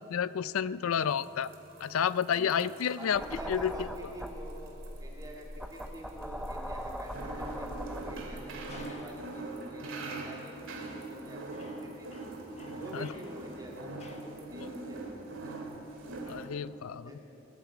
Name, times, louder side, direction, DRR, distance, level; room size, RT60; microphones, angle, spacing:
voice 1, 0.1-1.5 1.8-3.2 3.5-3.9 12.9-13.1 16.3-17.2, left 8 dB, 85° left, 18 dB, 0.4 m, -30 dB
sound 1, 0.9-16.4, right 2 dB, 70° right, 2.2 m, -43 dB
voice 2, 2.6-4.7 5.0-11.5 11.8-12.3 12.8-13.9 14.2-15.0 15.4-15.6 17.0-17.2, equal, 15° right, -1 dB, 2.3 m, -47 dB
sound 2, 3.1-8.9, equal, ahead, 0.5 m, -41 dB
sound 3, 8.7-9.3 10.0-10.2 10.8-11.2 11.5-14.4, left 3 dB, 30° left, 1.1 m, -55 dB
19.5 x 8.8 x 8.4 m, 3.0 s
head